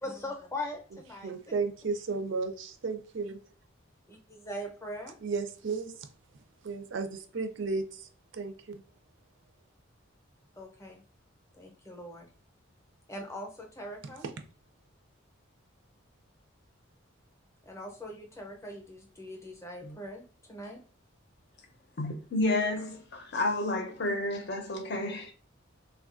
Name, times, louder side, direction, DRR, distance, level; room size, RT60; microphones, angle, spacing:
voice 1, 0.0-1.5 4.1-5.2 10.6-11.0 11.5-12.3 13.1-14.3 17.6-20.8, left 1 dB, 15° left, 0.6 m, -41 dB
voice 2, 1.2-3.4 5.2-5.9 6.6-8.8, right 4 dB, 60° right, 0.4 m, -34 dB
voice 3, 22.0-25.3, left 2 dB, 55° left, 0.6 m, -30 dB
3.3 x 2.3 x 2.4 m
head